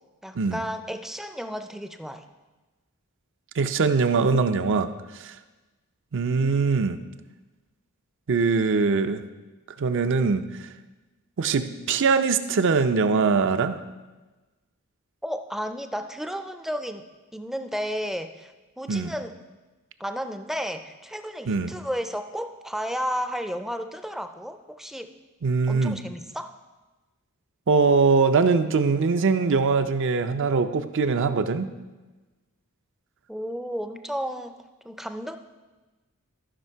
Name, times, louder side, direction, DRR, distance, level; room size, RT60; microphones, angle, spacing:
voice 1, 0.2-2.3 15.2-17.0 17.3-19.4 20.0-25.1 25.7-26.6 33.3-34.5 34.8-35.4, equal, ahead, 8 dB, 0.4 m, -33 dB
voice 2, 3.6-4.9 5.2-5.3 6.1-7.0 8.3-9.2 9.8-10.4 11.4-13.8 18.9-19.1 21.5-21.7 25.4-26.0 27.7-31.7, right 4 dB, 60° right, 10 dB, 0.5 m, -22 dB
14.0 x 5.7 x 4.6 m, 1.2 s
head